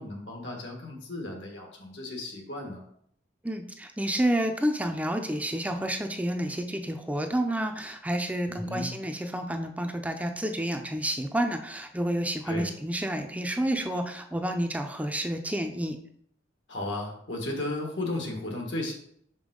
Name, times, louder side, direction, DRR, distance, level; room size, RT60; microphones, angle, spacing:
voice 1, 0.0-2.8 8.5-8.9 12.4-12.7 16.7-18.9, left 2 dB, 80° left, 1 dB, 1.5 m, -34 dB
voice 2, 3.4-16.0, right 1 dB, 10° right, 5 dB, 0.4 m, -29 dB
5.5 x 5.2 x 3.7 m, 0.67 s
head